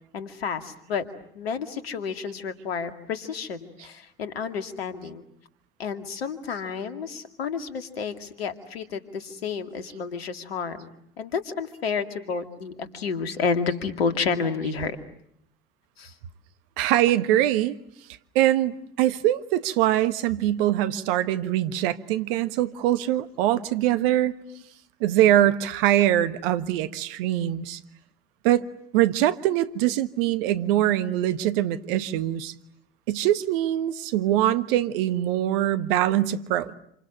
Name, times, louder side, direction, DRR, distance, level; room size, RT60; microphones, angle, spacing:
voice 1, 0.1-1.1 1.3-5.2 5.8-15.0 16.0-16.1 24.4-24.6, left 5 dB, 85° left, 2.3 m, -30 dB
voice 2, 16.8-17.8 18.3-24.3 25.0-27.8 28.4-28.7 28.9-32.5 33.1-36.7, right 13 dB, 70° right, 1.4 m, -23 dB
27.5 x 27.0 x 7.5 m
hypercardioid pair, 65°, 30 cm